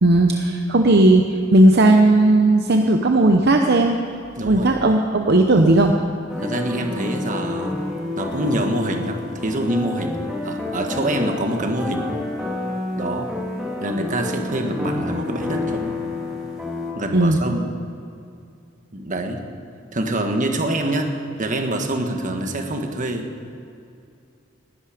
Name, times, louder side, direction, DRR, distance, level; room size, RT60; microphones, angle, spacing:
voice 1, 0.0-4.0 4.4-5.9 17.1-17.4, right 2 dB, 55° right, 3 dB, 0.8 m, -15 dB
voice 2, 4.4-4.7 6.4-7.8 8.2-12.1 13.0-13.3 13.8-16.0 17.0-17.6 18.9-19.4 19.9-23.3, right 1 dB, 40° right, 4 dB, 1.5 m, -25 dB
sound 1, 6.3-16.9, left 2 dB, 5° right, 2.8 m, -29 dB
19.5 x 12.0 x 5.1 m, 2.5 s
head